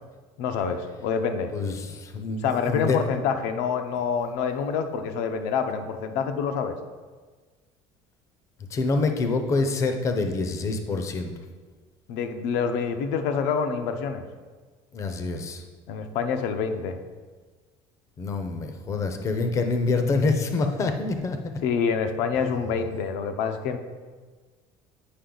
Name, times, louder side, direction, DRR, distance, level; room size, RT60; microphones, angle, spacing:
voice 1, 0.4-1.5 2.4-6.8 12.1-14.2 15.9-17.0 21.6-23.8, left 6 dB, 70° left, 7 dB, 0.7 m, -27 dB
voice 2, 1.5-3.0 8.7-11.3 14.9-15.6 18.2-21.6, left 3 dB, 25° left, 6 dB, 0.6 m, -26 dB
8.5 x 5.1 x 3.9 m, 1.4 s
cardioid pair, 170°, 12 cm